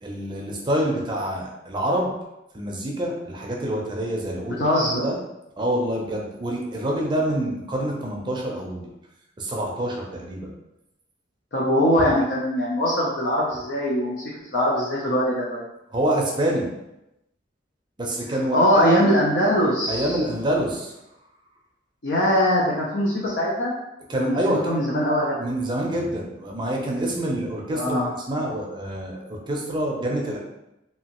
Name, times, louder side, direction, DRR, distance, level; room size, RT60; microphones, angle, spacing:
voice 1, 0.0-2.1 2.5-4.6 4.9-5.2 5.6-8.9 9.4-10.5 15.9-16.7 18.0-19.0 19.9-20.9 24.1-24.7 25.4-28.0 28.3-30.4, right 1 dB, 25° right, -1 dB, 0.5 m, -26 dB
voice 2, 4.5-5.0 11.5-15.6 18.3-20.2 22.0-23.7 24.1-25.4 27.7-28.1, equal, 65° left, -5 dB, 0.6 m, -22 dB
3.0 x 2.7 x 2.9 m, 0.89 s
head